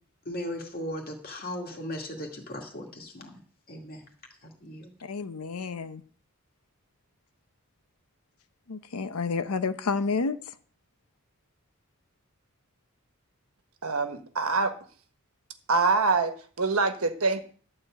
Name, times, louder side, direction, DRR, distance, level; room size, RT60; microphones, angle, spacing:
voice 1, 0.3-3.4 3.7-4.1 4.4-4.9, left 1 dB, 45° left, 2.3 m, -37 dB
voice 2, 5.0-6.0 8.7-10.4, left 4 dB, 85° left, 0.7 m, -30 dB
voice 3, 13.8-14.8 15.7-17.4, right 4 dB, 70° right, 1.2 m, -25 dB
11.5 x 4.4 x 7.7 m
head